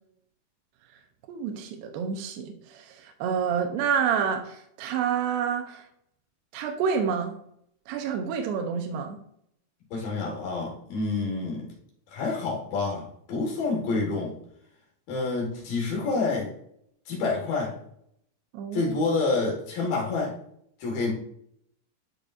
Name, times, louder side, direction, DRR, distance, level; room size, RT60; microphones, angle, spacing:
voice 1, 1.3-5.9 6.5-7.4 7.9-9.2 18.5-18.9, right 7 dB, 80° right, 5 dB, 2.5 m, -28 dB
voice 2, 9.9-11.7 12.1-14.3 15.1-16.5 17.1-17.7 18.7-20.4 20.8-21.1, left 3 dB, 55° left, -3 dB, 3.0 m, -28 dB
11.0 x 5.2 x 2.6 m, 0.70 s
omnidirectional pair, 5.6 m